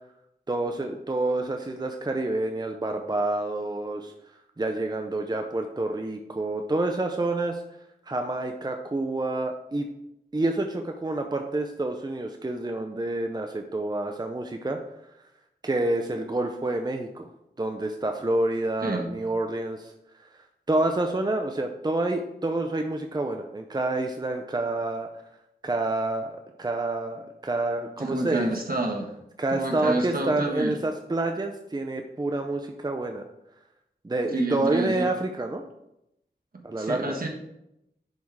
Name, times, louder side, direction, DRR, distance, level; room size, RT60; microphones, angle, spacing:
voice 1, 0.5-4.1 4.6-7.6 8.1-9.9 10.3-14.8 15.6-17.3 17.6-19.9 20.2-20.3 20.7-25.1 25.6-28.5 29.4-33.2 34.0-35.6 36.6-37.2, right 2 dB, 25° right, 4 dB, 0.6 m, -28 dB
voice 2, 28.0-29.1 29.5-30.8 34.3-35.1 36.5-37.3, right 2 dB, 60° right, 1 dB, 1.4 m, -29 dB
10.5 x 3.6 x 4.8 m, 0.84 s
wide cardioid pair, 70°, 17 cm